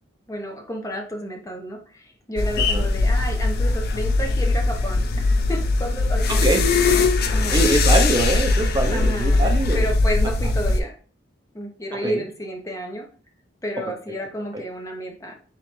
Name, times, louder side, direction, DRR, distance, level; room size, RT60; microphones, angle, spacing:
voice 1, 0.3-6.6 6.9-7.7 8.9-11.0 11.5-13.1 13.6-15.3, equal, 15° left, 2 dB, 0.7 m, -31 dB
sound 1, 2.4-10.8, left 3 dB, 55° left, 0.4 m, -20 dB
voice 2, 6.3-6.6 7.5-9.8 12.0-12.2, right 2 dB, 25° right, 3 dB, 0.5 m, -23 dB
3.6 x 3.3 x 3.0 m, 0.40 s
head